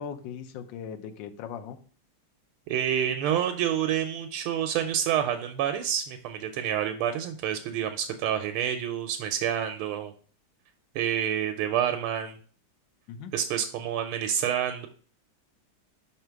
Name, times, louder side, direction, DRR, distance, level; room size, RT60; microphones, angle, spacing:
voice 1, 0.0-1.8 13.1-13.3, left 7 dB, 70° left, 5 dB, 1.3 m, -39 dB
voice 2, 2.7-10.1 10.9-12.4 13.3-14.9, right 9 dB, 85° right, 7 dB, 1.5 m, -28 dB
5.6 x 3.8 x 4.5 m, 0.42 s
omnidirectional pair, 2.3 m